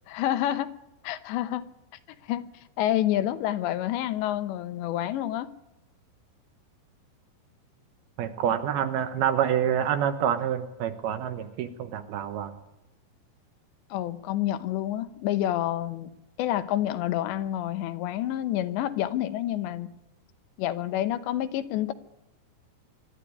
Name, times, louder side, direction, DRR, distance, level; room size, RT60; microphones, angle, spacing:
voice 1, 0.1-0.7 1.0-1.7 2.2-2.5 2.8-5.5 13.9-16.1 16.4-19.9 20.6-21.9, left 12 dB, 80° left, 12 dB, 3.1 m, -28 dB
voice 2, 8.2-12.5, right 9 dB, 70° right, 9 dB, 2.7 m, -27 dB
25.0 x 13.0 x 9.7 m, 0.93 s
omnidirectional pair, 5.3 m